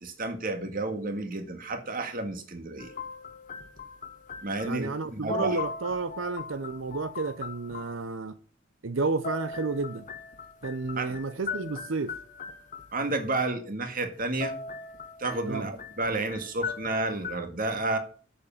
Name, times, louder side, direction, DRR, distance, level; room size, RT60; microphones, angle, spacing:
voice 1, 0.0-2.9 4.4-5.6 11.0-11.2 12.9-14.5 15.2-18.0, right 2 dB, 45° right, 1.9 m, -31 dB
sound 1, 2.8-5.0 5.3-8.0 9.0-13.3 14.2-17.4, left 5 dB, 40° left, 0.9 m, -39 dB
voice 2, 4.6-8.3 8.8-10.1 10.6-12.1 15.5-15.7, right 3 dB, 80° right, 0.7 m, -31 dB
8.3 x 7.3 x 7.1 m
head